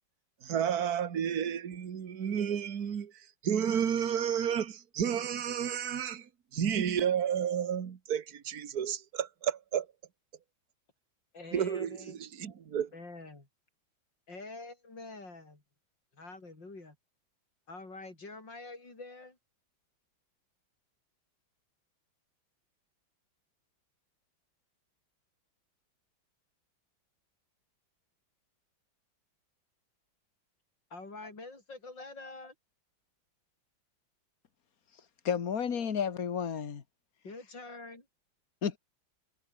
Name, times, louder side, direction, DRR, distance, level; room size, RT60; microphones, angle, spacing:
voice 1, 0.4-9.9 11.5-12.9, right 8 dB, 50° right, 1.9 m, -31 dB
voice 2, 11.3-12.2 12.9-13.5 14.3-15.6 16.1-17.0 17.7-19.4 30.9-32.5 37.2-38.1, left 3 dB, 65° left, 6.6 m, -46 dB
voice 3, 35.2-36.8 38.6-38.8, left 7 dB, 50° left, 2.0 m, -31 dB
omnidirectional pair, 2.1 m